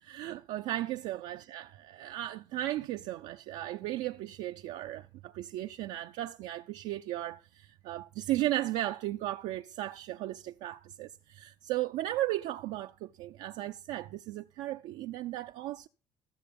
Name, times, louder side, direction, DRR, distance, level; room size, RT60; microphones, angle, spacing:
voice 1, 0.0-15.9, right 15 dB, 75° right, 0.5 m, -36 dB
14.0 x 6.7 x 5.2 m
supercardioid pair, 70°, 12 cm